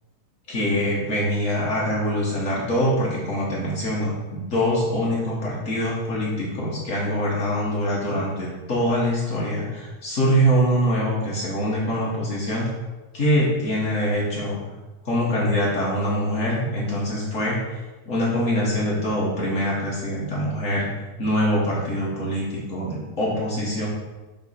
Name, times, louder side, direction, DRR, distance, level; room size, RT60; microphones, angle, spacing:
voice 1, 0.5-12.6 13.1-14.6 15.0-17.6 18.0-20.9 21.2-23.9, equal, 75° left, -6 dB, 0.7 m, -24 dB
9.6 x 3.6 x 4.3 m, 1.2 s
omnidirectional pair, 3.7 m